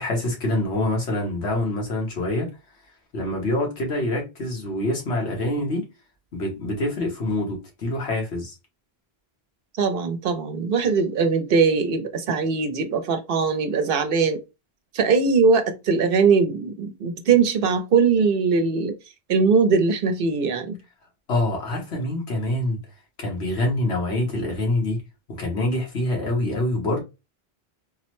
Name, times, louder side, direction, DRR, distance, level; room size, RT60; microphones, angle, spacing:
voice 1, 0.0-2.5 3.1-5.8 6.3-8.5 21.3-22.8 23.2-25.0 25.4-27.0, left 1 dB, 90° left, 1.5 m, -25 dB
voice 2, 9.8-14.4 14.9-18.9 19.3-20.8, right 5 dB, 65° right, 0.7 m, -21 dB
3.6 x 2.1 x 3.0 m
omnidirectional pair, 1.1 m